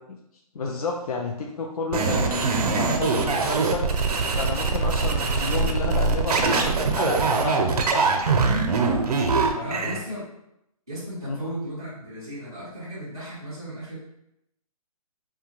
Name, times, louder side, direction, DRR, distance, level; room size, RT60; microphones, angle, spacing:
voice 1, 0.5-3.9 4.4-8.2 9.4-10.0 11.2-11.4, left 3 dB, 75° left, 1 dB, 0.4 m, -31 dB
sound 1, 1.9-10.0, right 4 dB, 85° right, 0.5 m, -23 dB
voice 2, 9.6-10.2 10.9-14.0, right 1 dB, 10° right, -11 dB, 0.3 m, -35 dB
2.7 x 2.2 x 2.9 m, 0.82 s
hypercardioid pair, 175°, 19 cm